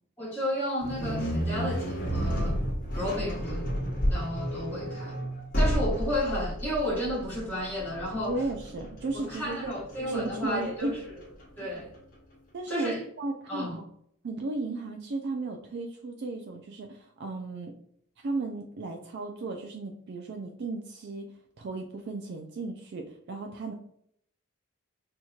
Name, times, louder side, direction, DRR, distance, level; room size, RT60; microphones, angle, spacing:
voice 1, 0.2-2.6 2.9-3.7 4.1-5.3 5.5-8.4 9.1-11.0 11.6-11.9 12.7-13.0 13.5-13.7, equal, 10° left, -7 dB, 1.2 m, -32 dB
sound 1, 0.8-11.9, equal, 40° left, 1.0 m, -31 dB
voice 2, 8.3-9.7 10.1-11.0 11.6-11.7 12.5-13.8 14.2-17.7 18.2-21.3 21.6-23.7, right 2 dB, 50° right, 3 dB, 0.4 m, -35 dB
4.4 x 2.8 x 2.3 m, 0.69 s
head